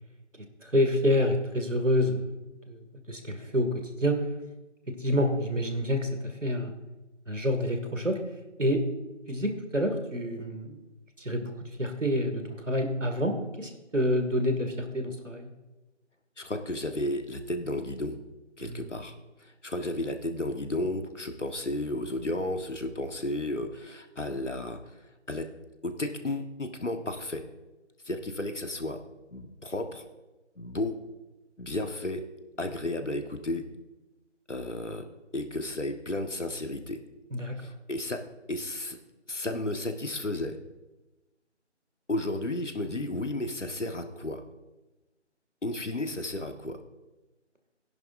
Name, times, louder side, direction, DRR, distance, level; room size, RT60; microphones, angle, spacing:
voice 1, 0.6-2.3 2.7-2.8 3.1-3.7 4.0-4.2 4.9-6.7 7.3-8.2 8.6-8.8 9.3-10.8 11.2-11.5 11.8-15.5 18.6-18.9 37.3-37.6, equal, 85° right, 5 dB, 2.2 m, -27 dB
voice 2, 16.4-18.1 18.6-19.1 19.4-25.0 25.3-25.5 25.8-27.4 28.0-29.0 29.3-30.0 30.6-31.0 31.6-32.2 32.6-33.6 34.5-35.0 35.3-37.0 37.6-38.2 38.5-39.0 39.3-40.6 42.1-44.4 45.6-46.8, left 1 dB, 75° left, 6 dB, 1.5 m, -33 dB
17.5 x 10.5 x 2.6 m, 1.1 s
figure-of-eight pair, 170°, 36 cm